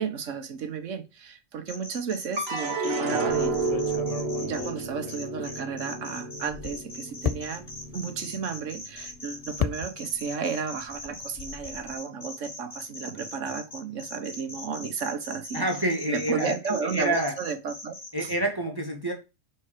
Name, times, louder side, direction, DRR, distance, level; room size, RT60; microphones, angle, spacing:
voice 1, 0.0-3.6 4.4-7.6 7.9-15.6 16.1-17.9 18.2-18.3, right 6 dB, 75° right, 1.3 m, -33 dB
sound 1, 1.7-4.7 5.1-18.3, left 2 dB, 40° left, 2.0 m, -41 dB
sound 2, 2.4-8.8 9.2-9.9, right 3 dB, 55° right, 1.4 m, -31 dB
sound 3, 3.3-6.0 6.3-10.4 10.6-11.9, left 8 dB, 60° left, 0.4 m, -36 dB
voice 2, 15.5-16.6 16.9-17.4 18.1-19.1, right 1 dB, 20° right, 1.1 m, -27 dB
5.5 x 4.4 x 5.0 m
omnidirectional pair, 1.3 m